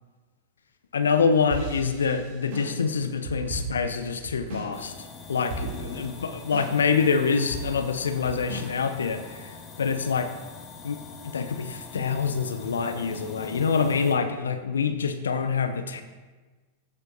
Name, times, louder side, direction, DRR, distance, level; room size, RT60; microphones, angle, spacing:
voice 1, 0.9-10.3 10.8-16.0, left 5 dB, 70° left, 9 dB, 0.6 m, -26 dB
sound 1, 1.5-4.8 5.0-5.1 5.5-6.0 6.5-7.0 7.5-9.3, right 2 dB, 50° right, 2.9 m, -36 dB
sound 2, 4.7-14.1, left 4 dB, 40° left, 1.7 m, -43 dB
15.0 x 7.9 x 2.7 m, 1.3 s
figure-of-eight pair, 90°, 0 cm